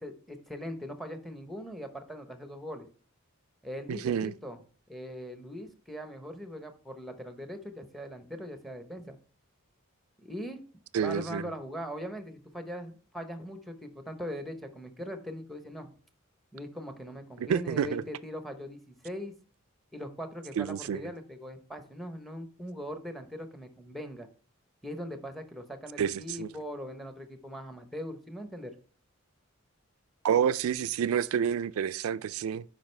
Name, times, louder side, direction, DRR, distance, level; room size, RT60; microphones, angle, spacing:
voice 1, 0.0-2.9 3.6-4.6 4.9-9.2 10.2-10.6 11.0-15.9 16.5-19.3 19.9-24.3 24.8-28.7, equal, ahead, 0.8 m, -40 dB
voice 2, 3.9-4.3 10.9-11.4 17.4-18.0 20.6-21.1 26.0-26.5 30.2-32.6, right 8 dB, 90° right, 0.3 m, -29 dB
8.8 x 5.2 x 3.2 m
head